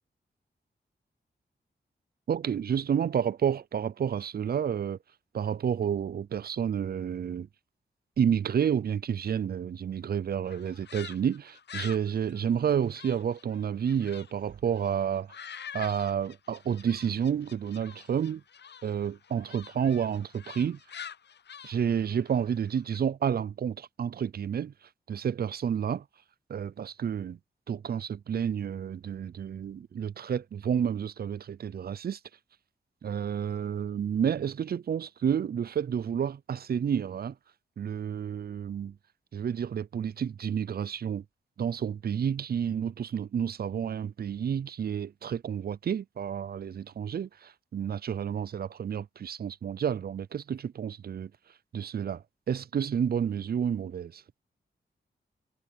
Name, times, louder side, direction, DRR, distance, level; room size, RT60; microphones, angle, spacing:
voice 1, 2.3-5.0 5.3-7.5 8.2-15.4 15.7-18.4 18.8-20.8 21.6-24.7 25.1-26.0 26.5-27.4 27.7-32.2 33.0-37.4 37.8-39.0 39.3-41.2 41.6-51.3 51.7-54.2, right 8 dB, 55° right, 0.4 m, -30 dB
sound 1, 10.5-14.3 14.7-23.0, left 8 dB, 65° left, 0.7 m, -46 dB
cardioid pair, 75°, 19 cm